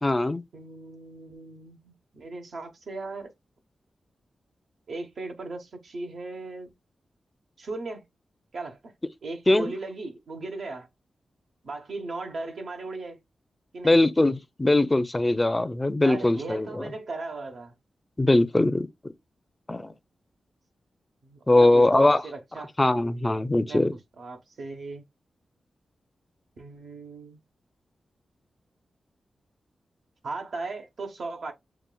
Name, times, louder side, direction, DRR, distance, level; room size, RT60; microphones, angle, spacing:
voice 1, 0.0-0.4 9.5-9.7 13.8-16.9 18.2-18.9 19.7-19.9 21.5-22.2 22.8-23.9, left 2 dB, 25° left, 0.6 m, -21 dB
voice 2, 0.5-3.3 4.9-6.7 7.6-8.0 8.5-8.9 9.2-10.9 11.6-13.2 13.7-14.0 16.0-17.7 21.2-22.7 23.7-25.1 26.6-27.4 30.2-31.5, right 3 dB, 70° right, 1.0 m, -37 dB
6.9 x 2.4 x 2.3 m
cardioid pair, 45°, 0 cm